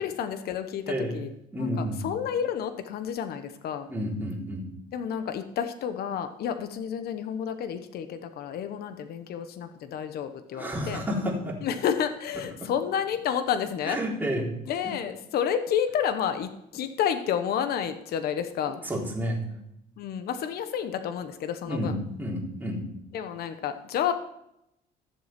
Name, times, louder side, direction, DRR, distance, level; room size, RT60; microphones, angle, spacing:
voice 1, 0.0-1.3 1.6-3.9 4.9-11.0 11.6-14.0 14.7-18.8 20.0-21.9 23.1-24.1, left 8 dB, 65° left, 9 dB, 1.1 m, -30 dB
voice 2, 1.5-2.1 3.9-4.7 10.5-11.6 12.3-12.7 13.8-14.5 14.8-14.9 18.8-19.4 21.7-22.9, equal, 10° right, -2 dB, 3.7 m, -30 dB
13.5 x 7.6 x 5.9 m, 0.80 s
cardioid pair, 110°, 17 cm